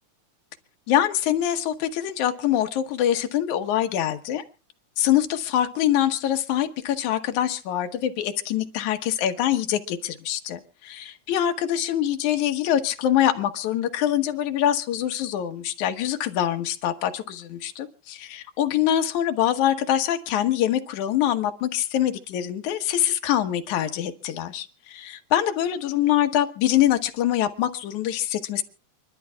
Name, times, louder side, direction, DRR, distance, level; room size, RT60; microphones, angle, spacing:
voice 1, 0.9-4.4 5.0-28.6, left 11 dB, 80° left, 2.6 m, -24 dB
29.0 x 11.5 x 2.3 m
omnidirectional pair, 3.4 m